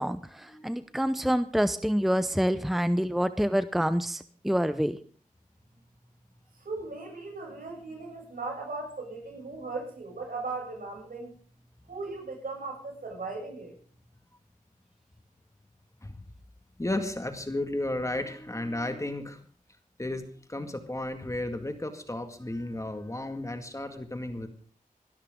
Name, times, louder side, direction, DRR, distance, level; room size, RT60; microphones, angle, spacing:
voice 1, 0.0-5.0, equal, ahead, 13 dB, 0.7 m, -27 dB
voice 2, 6.6-11.3 11.9-13.7, right 3 dB, 75° right, 0 dB, 7.7 m, -37 dB
voice 3, 16.8-19.4 20.0-24.5, left 1 dB, 20° left, 7 dB, 2.0 m, -33 dB
24.0 x 13.0 x 3.8 m, 0.41 s
wide cardioid pair, 65°, 15 cm